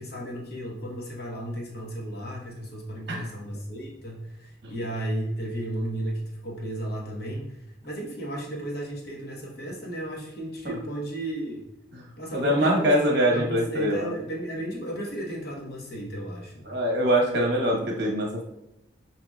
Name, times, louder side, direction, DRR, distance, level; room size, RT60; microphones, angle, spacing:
voice 1, 0.0-11.6 12.2-16.6, right 1 dB, 55° left, -2 dB, 1.0 m, -34 dB
voice 2, 12.3-14.1 16.7-18.4, equal, 60° right, 0 dB, 1.0 m, -23 dB
6.1 x 2.9 x 2.3 m, 0.88 s
head